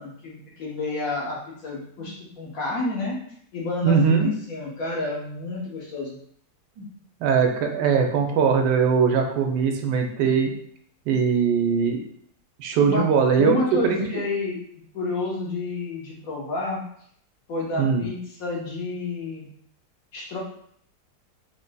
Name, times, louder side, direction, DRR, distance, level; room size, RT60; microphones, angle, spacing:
voice 1, 0.0-3.2 3.5-6.2 12.9-13.1 13.4-14.6 14.9-16.8 17.5-19.5 20.1-20.4, left 2 dB, 55° left, -4 dB, 1.3 m, -30 dB
voice 2, 3.8-4.3 6.8-6.9 7.2-10.5 11.1-12.0 12.6-13.6 13.8-14.0 17.8-18.0, right 6 dB, 80° right, 4 dB, 1.2 m, -21 dB
3.8 x 3.5 x 2.2 m, 0.64 s
omnidirectional pair, 1.9 m